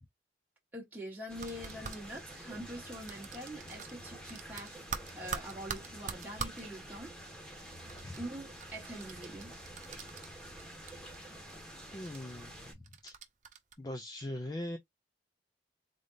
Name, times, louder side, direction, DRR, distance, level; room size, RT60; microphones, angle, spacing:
voice 1, 0.7-4.8 5.2-7.1 7.5-7.9 8.2-9.5, right 1 dB, 10° right, 1.3 m, -44 dB
sound 1, 1.3-12.7, right 1 dB, 5° left, 1.4 m, -49 dB
sound 2, 1.3-2.0 3.1-4.0 4.3-6.6 7.9-10.6 10.9-11.5 12.0-12.2 12.8-13.7, right 6 dB, 45° right, 0.6 m, -43 dB
voice 2, 11.9-13.2 13.8-14.8, left 1 dB, 20° left, 0.5 m, -41 dB
3.8 x 3.3 x 2.7 m
head